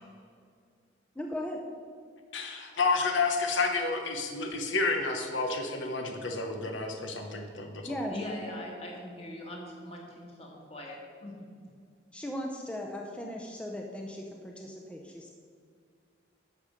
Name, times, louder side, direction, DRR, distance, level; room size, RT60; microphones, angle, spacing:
voice 1, 1.2-1.6 7.8-8.1 12.1-15.3, left 1 dB, 5° left, 1 dB, 0.6 m, -37 dB
voice 2, 2.3-8.0, left 3 dB, 85° left, 4 dB, 1.1 m, -30 dB
voice 3, 8.1-11.4, left 1 dB, 30° left, -1 dB, 1.9 m, -41 dB
11.0 x 7.0 x 5.1 m, 2.2 s
head